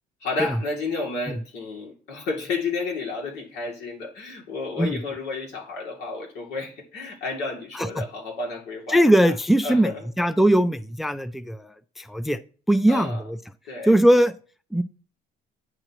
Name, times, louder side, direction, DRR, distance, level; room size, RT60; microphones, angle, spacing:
voice 1, 0.2-9.0 9.6-10.1 12.9-13.2 13.7-13.9, left 3 dB, 80° left, 2.7 m, -31 dB
voice 2, 8.9-9.9 10.2-11.7 12.0-12.4 12.7-13.4 13.9-14.3 14.7-14.8, right 1 dB, ahead, 0.4 m, -19 dB
9.8 x 7.8 x 3.0 m
cardioid pair, 110°, 17 cm